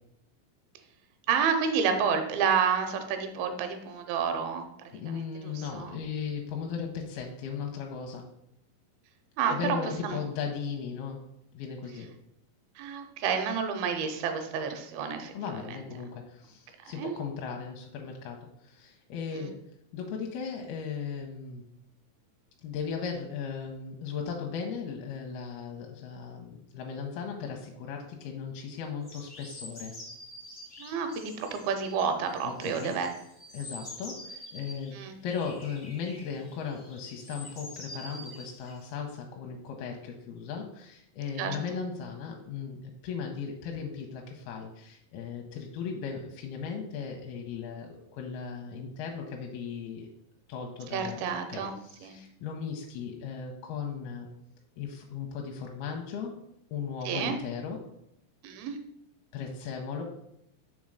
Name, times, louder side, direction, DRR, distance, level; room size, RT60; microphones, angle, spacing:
voice 1, 1.3-6.0 9.4-9.8 10.0-10.2 12.8-15.3 15.7-15.8 16.8-17.1 19.3-19.5 30.8-33.1 34.9-35.1 41.4-41.6 50.9-51.8 52.0-52.2 57.1-57.4 58.4-58.8, right 6 dB, 80° right, 6 dB, 2.6 m, -30 dB
voice 2, 4.9-8.3 9.5-11.2 11.5-12.1 15.3-19.6 19.9-21.6 22.6-29.9 32.4-33.0 33.5-50.1 50.5-51.2 51.5-54.3 54.8-56.4 56.7-57.8 59.3-60.0, left 6 dB, 85° left, 1 dB, 2.6 m, -37 dB
sound 1, 29.0-34.9 35.3-38.9, left 1 dB, 50° left, 0.5 m, -46 dB
6.4 x 3.6 x 6.2 m, 0.78 s
omnidirectional pair, 4.5 m